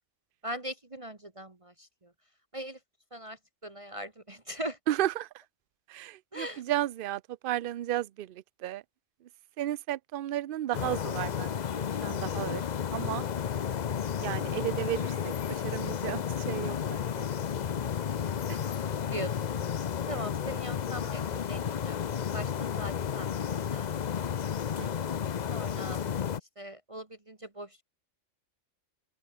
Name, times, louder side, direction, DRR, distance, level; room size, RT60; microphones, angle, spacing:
voice 1, 0.4-2.1 2.5-2.8 3.1-4.8 6.3-6.6 19.1-19.6 20.1-22.0 22.3-24.0 25.5-26.0 26.6-27.8, right 1 dB, 25° right, 1.5 m, -40 dB
voice 2, 4.9-5.4 5.9-8.8 9.6-12.6 12.9-13.3 14.2-17.2 18.5-18.6 24.8-25.1, right 13 dB, 60° right, 0.6 m, -34 dB
sound 1, 10.7-26.4, left 8 dB, 45° left, 0.6 m, -32 dB
open air
omnidirectional pair, 1.3 m